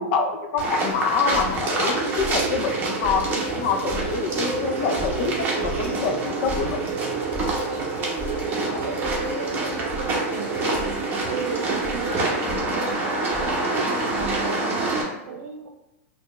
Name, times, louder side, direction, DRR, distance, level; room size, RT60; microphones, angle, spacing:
voice 1, 0.0-7.0 8.6-8.9, left 5 dB, 45° left, 5 dB, 0.5 m, -26 dB
sound 1, 0.6-15.0, right 2 dB, 25° right, 0.9 m, -27 dB
sound 2, 0.9-14.5, right 1 dB, 15° left, 0.9 m, -38 dB
sound 3, 1.9-12.5, right 5 dB, 45° right, 0.4 m, -31 dB
voice 2, 8.3-13.1 13.3-13.7 14.1-15.7, right 4 dB, 70° right, 4 dB, 0.7 m, -36 dB
4.3 x 2.3 x 3.0 m, 0.90 s
supercardioid pair, 150°, 8 cm